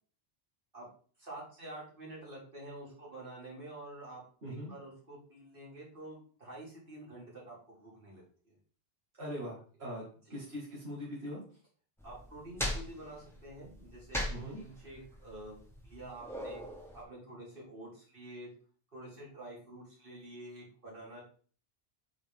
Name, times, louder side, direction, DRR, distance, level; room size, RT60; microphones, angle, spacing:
voice 1, 1.2-8.6 12.0-15.6 15.8-16.6 16.9-18.5 18.9-21.2, right 1 dB, 60° right, -5 dB, 3.3 m, -48 dB
voice 2, 4.4-4.7 9.2-10.0 10.3-11.4 14.3-14.6, equal, 85° right, -6 dB, 2.4 m, -41 dB
sound 1, 12.0-17.0, equal, ahead, 1.4 m, -40 dB
8.3 x 4.3 x 3.6 m, 0.43 s
omnidirectional pair, 1.0 m